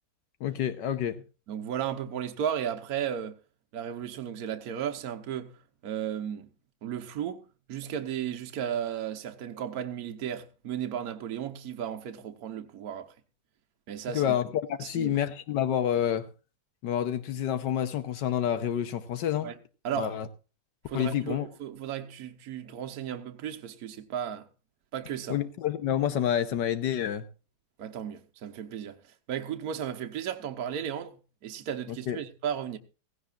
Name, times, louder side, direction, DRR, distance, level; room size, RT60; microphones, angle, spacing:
voice 1, 0.4-1.2 14.1-16.3 16.8-19.5 20.0-20.3 20.9-21.5 25.3-27.2 32.1-32.2, left 10 dB, 80° left, 1.5 m, -28 dB
voice 2, 1.5-3.3 3.7-5.5 5.8-6.5 6.8-7.4 7.7-13.1 13.9-14.3 14.8-15.2 19.4-19.6 19.8-20.2 20.9-24.5 24.9-25.4 27.8-29.0 29.3-31.2 31.4-32.8, right 9 dB, 65° right, 1.4 m, -34 dB
16.5 x 16.0 x 2.4 m
omnidirectional pair, 1.8 m